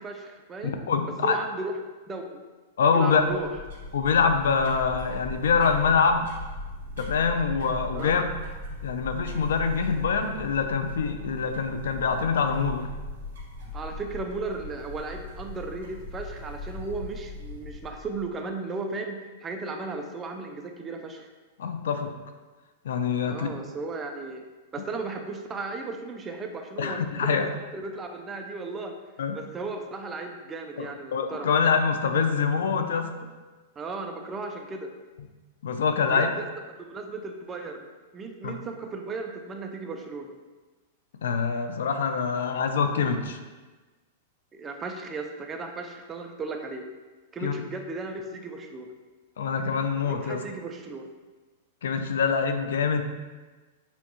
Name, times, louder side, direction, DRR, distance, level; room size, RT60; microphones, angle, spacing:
voice 1, 0.0-0.8 1.2-1.8 2.1-2.4 2.9-3.5 7.9-8.2 13.7-21.3 23.3-24.4 24.7-27.4 27.7-29.0 29.3-31.5 33.8-34.9 36.1-37.9 38.1-40.3 44.5-46.9 47.3-48.9 50.0-51.1, right 3 dB, 15° right, 4 dB, 0.3 m, -35 dB
voice 2, 0.6-1.4 2.8-3.4 3.9-6.3 7.0-8.2 8.8-12.9 21.6-22.1 22.8-23.5 26.8-27.5 29.2-29.4 30.8-33.3 35.6-36.3 38.4-38.5 41.2-43.4 47.4-47.5 49.4-50.4 51.8-53.0, left 5 dB, 85° left, 7 dB, 0.5 m, -25 dB
sound 1, 3.2-18.4, left 1 dB, 70° right, 1.2 m, -39 dB
6.8 x 2.3 x 3.0 m, 1.3 s
supercardioid pair, 160°, 0 cm